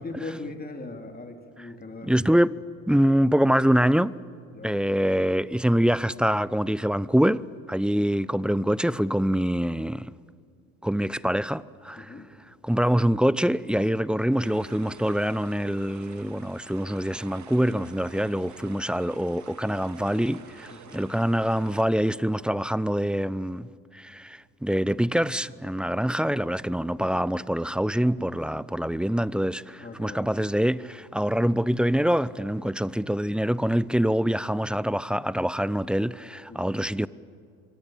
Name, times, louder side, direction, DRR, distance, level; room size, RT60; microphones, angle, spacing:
voice 1, 0.0-2.1 4.5-4.7 7.9-8.1 12.0-12.3 20.7-21.0 29.8-30.3 36.5-36.8, left 2 dB, 20° left, 3.2 m, -39 dB
voice 2, 2.0-4.1 4.6-7.4 7.7-10.1 10.8-12.1 12.6-37.1, equal, ahead, 0.6 m, -25 dB
sound 1, 14.4-21.8, right 7 dB, 40° right, 2.2 m, -49 dB
27.5 x 23.5 x 8.8 m
hypercardioid pair, 60°, 42 cm